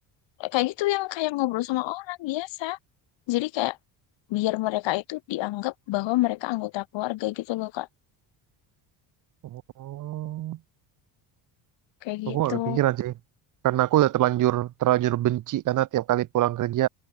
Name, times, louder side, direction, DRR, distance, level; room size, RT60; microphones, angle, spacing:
voice 1, 0.4-2.8 3.3-3.8 4.3-7.9 12.0-12.8, left 18 dB, 70° left, 2.9 m, -28 dB
voice 2, 9.5-10.6 12.2-13.1 13.6-16.9, right 14 dB, 45° right, 0.8 m, -24 dB
cardioid pair, 150°, 45 cm